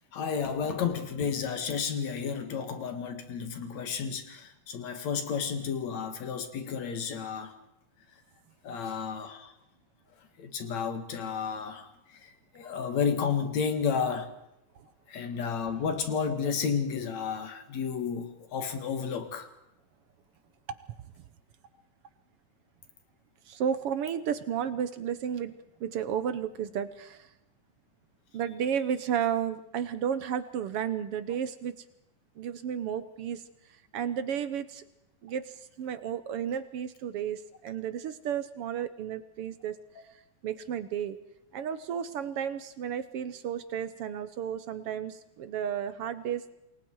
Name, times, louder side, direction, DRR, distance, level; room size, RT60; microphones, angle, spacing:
voice 1, 0.1-7.5 8.6-9.5 10.4-14.3 15.1-19.5, left 6 dB, 65° left, 8 dB, 3.2 m, -32 dB
voice 2, 23.5-25.5 25.8-27.3 28.3-31.8 32.4-33.4 33.9-34.8 35.2-39.8 40.4-41.2 41.5-46.6, right 8 dB, 65° right, 13 dB, 1.5 m, -32 dB
28.0 x 21.5 x 4.7 m, 0.85 s
omnidirectional pair, 3.5 m